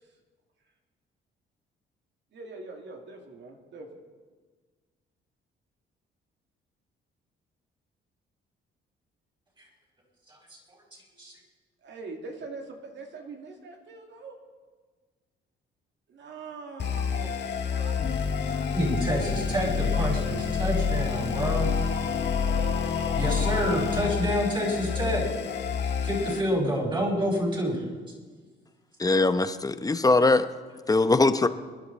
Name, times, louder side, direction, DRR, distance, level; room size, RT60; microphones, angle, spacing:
voice 1, 2.3-3.9 11.8-14.4 16.1-18.1 18.5-18.7 19.7-20.2 30.9-31.5, right 3 dB, 65° right, 2 dB, 2.4 m, -43 dB
sound 1, 16.8-26.4, left 6 dB, 60° left, 1.7 m, -28 dB
voice 2, 18.7-21.8 23.2-25.3 26.0-27.8, equal, 25° right, -2 dB, 5.4 m, -28 dB
voice 3, 29.0-30.5 30.9-31.5, left 3 dB, 20° left, 11 dB, 0.8 m, -21 dB
25.0 x 10.5 x 4.1 m, 1.4 s
cardioid pair, 90°, 20 cm